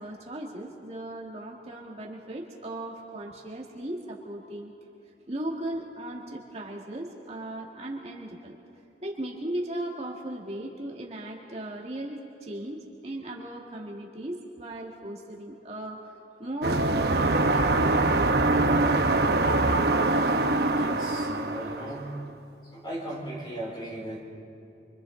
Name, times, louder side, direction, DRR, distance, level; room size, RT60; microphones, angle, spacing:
voice 1, 0.0-4.7 5.3-8.6 9.0-16.1 16.4-18.1, right 1 dB, 35° right, -2 dB, 1.9 m, -37 dB
sound 1, 16.6-22.1, right 2 dB, 60° right, 1.0 m, -23 dB
voice 2, 20.7-22.2 22.7-24.3, right 1 dB, 25° left, -3 dB, 4.7 m, -37 dB
29.0 x 25.0 x 3.9 m, 2.8 s
head